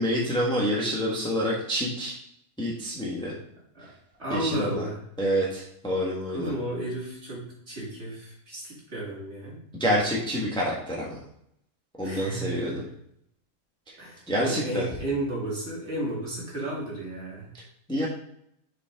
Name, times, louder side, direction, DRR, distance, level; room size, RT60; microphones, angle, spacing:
voice 1, 0.0-2.2 2.6-3.3 4.3-4.9 5.2-6.5 9.8-11.2 12.0-12.8 14.3-14.8 17.9-18.1, equal, 5° left, -4 dB, 1.2 m, -27 dB
voice 2, 4.2-5.0 6.3-9.6 12.0-12.8 14.0-17.5, right 1 dB, 50° right, -5 dB, 2.7 m, -33 dB
6.4 x 5.2 x 3.5 m, 0.72 s
omnidirectional pair, 1.5 m